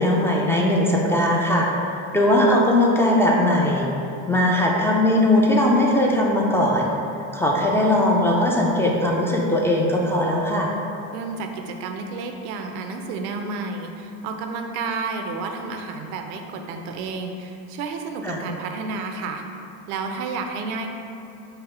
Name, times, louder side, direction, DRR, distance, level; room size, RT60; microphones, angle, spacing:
voice 1, 0.0-3.9 4.3-6.9 7.3-10.7 18.2-18.4, left 1 dB, 10° left, -3 dB, 0.3 m, -19 dB
voice 2, 11.1-19.4 19.9-20.9, right 4 dB, 85° right, 4 dB, 0.5 m, -31 dB
3.9 x 2.0 x 4.1 m, 2.7 s
supercardioid pair, 105°, 33 cm